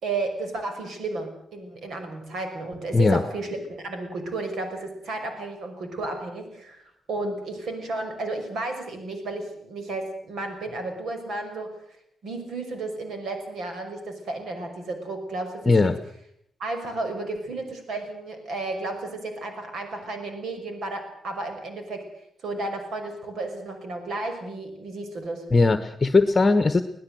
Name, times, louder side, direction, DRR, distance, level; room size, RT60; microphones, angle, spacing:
voice 1, 0.0-11.7 12.2-15.9 16.6-22.0 22.4-25.4, right 2 dB, 70° right, 6 dB, 5.8 m, -33 dB
voice 2, 15.6-16.0 25.5-26.8, left 3 dB, 25° left, 10 dB, 1.2 m, -19 dB
22.5 x 18.5 x 7.9 m, 0.71 s
cardioid pair, 125°, 0 cm